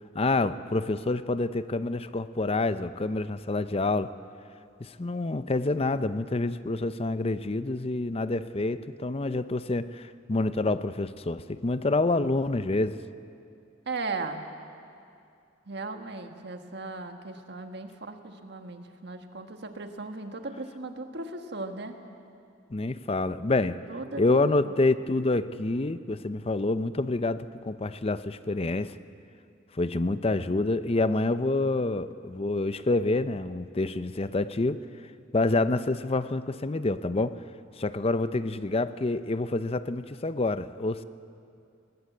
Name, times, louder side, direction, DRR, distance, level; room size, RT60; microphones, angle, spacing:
voice 1, 0.1-4.1 4.8-13.0 22.7-23.8 24.2-28.9 29.8-34.8 35.3-37.4 37.8-41.0, left 2 dB, 30° left, 13 dB, 0.6 m, -27 dB
voice 2, 13.8-14.5 15.6-21.9 23.9-24.8, right 3 dB, 60° right, 5 dB, 1.6 m, -37 dB
20.0 x 19.0 x 8.4 m, 2.5 s
head